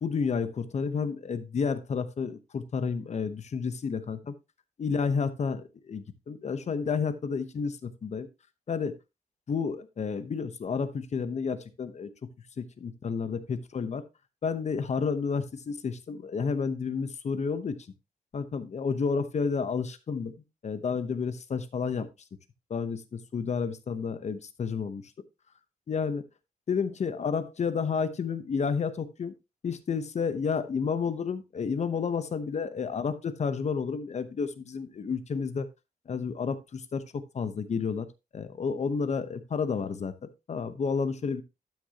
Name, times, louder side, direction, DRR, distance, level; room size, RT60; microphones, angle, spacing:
voice 1, 0.0-4.3 4.8-8.3 8.7-8.9 9.5-12.3 12.6-14.0 14.4-17.8 18.3-20.3 20.6-22.1 22.7-25.0 25.9-26.2 26.7-29.3 29.6-35.7 36.1-38.1 38.3-41.4, left 5 dB, 50° left, 12 dB, 0.9 m, -31 dB
12.0 x 6.4 x 2.8 m, 0.25 s
wide cardioid pair, 165°, 15 cm